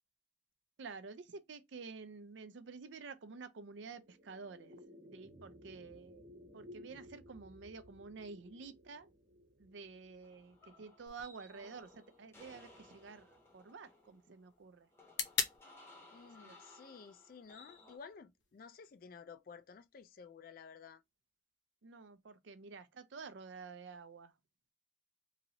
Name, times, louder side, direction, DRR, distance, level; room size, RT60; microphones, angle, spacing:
voice 1, 0.8-4.8 5.1-6.2 6.5-9.1 9.6-14.9 16.4-16.5 21.8-24.3, right 4 dB, 75° right, 0.5 m, -50 dB
sound 1, 3.6-14.1, left 1 dB, 55° right, 1.0 m, -59 dB
sound 2, 10.2-18.0, left 2 dB, 15° left, 0.8 m, -60 dB
sound 3, 11.1-19.0, left 7 dB, 70° left, 0.7 m, -46 dB
voice 2, 16.1-21.0, left 5 dB, 50° left, 0.3 m, -54 dB
2.9 x 2.6 x 2.8 m
head